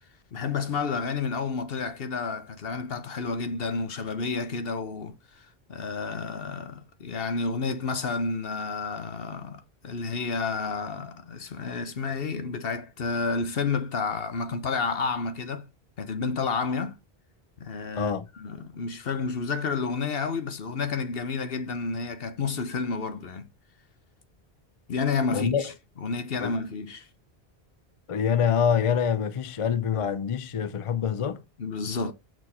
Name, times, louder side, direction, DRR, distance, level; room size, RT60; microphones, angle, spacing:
voice 1, 0.3-15.7 16.0-17.0 17.6-23.5 24.9-27.1 31.6-32.1, left 4 dB, 65° left, 1.2 m, -30 dB
voice 2, 25.3-25.6 26.4-26.5 28.1-31.4, left 7 dB, 40° left, 0.5 m, -25 dB
6.2 x 4.6 x 4.2 m
omnidirectional pair, 1.1 m